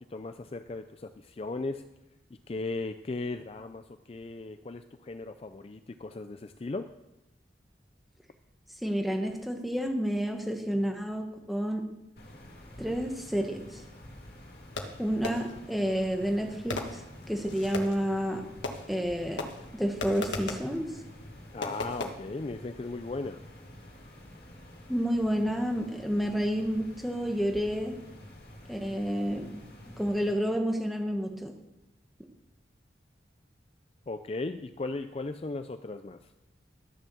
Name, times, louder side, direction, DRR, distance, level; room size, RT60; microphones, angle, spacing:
voice 1, 0.1-1.8 2.5-6.9 21.5-23.4 34.1-36.3, left 3 dB, 35° left, 9 dB, 0.4 m, -37 dB
voice 2, 8.8-11.8 12.8-13.8 15.0-17.0 17.3-18.4 18.9-19.4 19.7-20.9 24.9-27.9 28.7-29.5 30.0-31.5, equal, ahead, 3 dB, 1.3 m, -30 dB
sound 1, 12.2-30.3, left 1 dB, 55° left, 2.8 m, -49 dB
Fireworks, 14.8-15.7 16.7-18.1 18.6-19.1 19.4-20.8 21.6-22.1, left 2 dB, 90° left, 1.5 m, -37 dB
12.5 x 7.1 x 7.0 m, 0.91 s
head